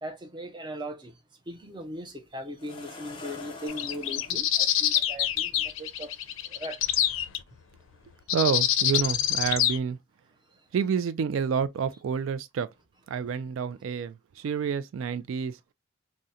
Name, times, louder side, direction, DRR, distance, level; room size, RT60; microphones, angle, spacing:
voice 1, 0.0-1.1 1.5-6.1 6.5-6.8, equal, 25° right, 0.5 m, -39 dB
sound 1, 1.5-1.6 2.6-4.4 5.6-5.7 6.2-6.4, left 2 dB, 25° left, 0.7 m, -44 dB
sound 2, 3.7-7.4 8.3-9.8, left 11 dB, 85° left, 0.4 m, -26 dB
voice 2, 8.3-10.0 10.7-12.7 13.1-15.6, right 6 dB, 80° right, 0.3 m, -28 dB
3.6 x 2.1 x 2.7 m
head